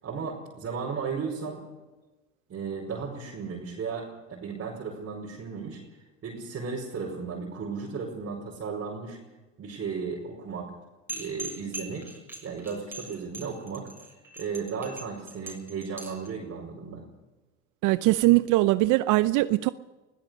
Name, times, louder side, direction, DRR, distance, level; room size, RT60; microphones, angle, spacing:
voice 1, 0.0-1.6 2.5-5.8 6.2-9.2 9.6-10.7 11.1-12.1 12.4-13.9 14.4-17.0, right 5 dB, 35° right, 5.2 m, -35 dB
sound 1, 11.1-16.3, right 2 dB, 5° right, 6.8 m, -40 dB
voice 2, 17.8-19.7, right 18 dB, 55° right, 0.7 m, -21 dB
23.5 x 16.5 x 6.6 m
hypercardioid pair, 85°, 36 cm